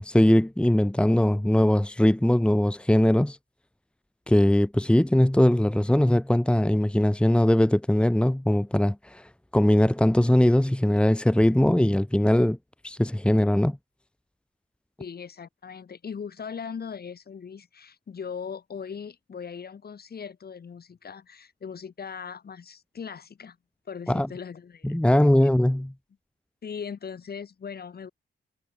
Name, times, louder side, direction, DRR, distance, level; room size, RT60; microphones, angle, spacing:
voice 1, 0.0-3.4 4.3-9.2 9.5-12.6 12.8-13.8 24.1-24.3 24.8-25.9, left 1 dB, 5° left, 1.8 m, -21 dB
voice 2, 15.0-23.6 23.9-25.5 26.6-28.1, left 6 dB, 55° left, 6.1 m, -39 dB
cardioid pair, 100°, 20 cm